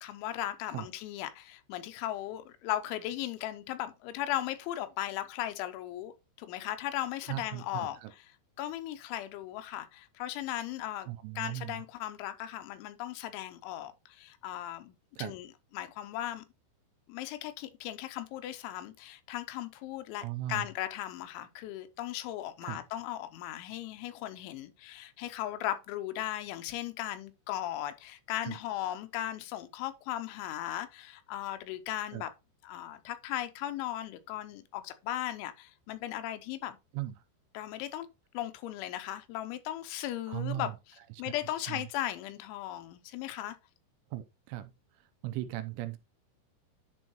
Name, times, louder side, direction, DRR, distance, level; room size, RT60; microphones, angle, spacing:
voice 1, 0.0-6.1 6.4-8.3 8.6-11.1 11.4-15.5 15.7-16.4 17.1-32.3 32.6-36.8 37.5-38.1 38.3-40.7 41.2-43.6, left 13 dB, 85° left, 3.0 m, -37 dB
voice 2, 7.3-8.1 11.1-11.8 15.2-15.3 20.2-20.7 22.6-22.8 28.5-28.6 32.1-32.2 36.9-37.2 40.3-40.7 41.7-41.9 44.1-44.7 45.2-46.0, right 14 dB, 85° right, 3.0 m, -37 dB
11.0 x 3.8 x 2.9 m
omnidirectional pair, 5.5 m